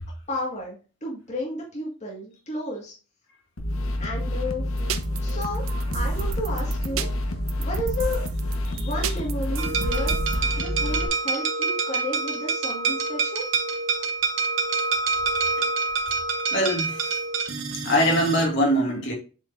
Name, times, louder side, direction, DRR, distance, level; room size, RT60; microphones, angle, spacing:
voice 1, 0.3-2.9 4.0-4.6 5.2-5.7 5.9-7.1 7.6-8.2 8.7-13.4, left 1 dB, 35° left, 1.8 m, -32 dB
sound 1, 3.6-11.1, left 1 dB, 85° left, 1.2 m, -28 dB
sound 2, 4.8-10.4, right 4 dB, 80° right, 0.7 m, -33 dB
sound 3, 9.6-18.5, right 4 dB, 65° right, 1.2 m, -27 dB
voice 2, 16.5-17.2 17.8-19.1, equal, 60° left, 2.2 m, -23 dB
7.6 x 5.0 x 2.6 m
head